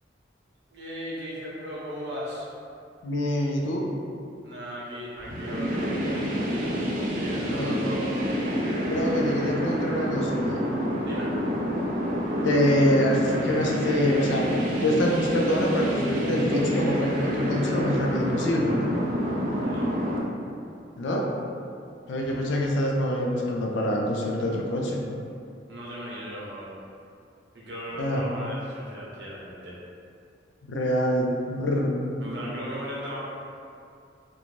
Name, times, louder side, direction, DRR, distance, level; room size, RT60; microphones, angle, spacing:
voice 1, 0.7-2.5 4.4-8.1 11.0-11.3 19.6-19.9 22.2-22.4 25.7-26.7 27.5-29.8 32.2-33.2, equal, 65° right, -6 dB, 0.7 m, -37 dB
voice 2, 3.0-3.9 7.4-7.8 8.8-10.6 12.4-14.5 14.8-18.9 21.0-21.3 22.1-25.0 28.0-28.2 30.7-31.9, left 1 dB, 85° left, -1 dB, 0.4 m, -25 dB
sound 1, 5.2-20.2, equal, 50° right, 0.4 m, -28 dB
2.5 x 2.2 x 3.1 m, 2.5 s
head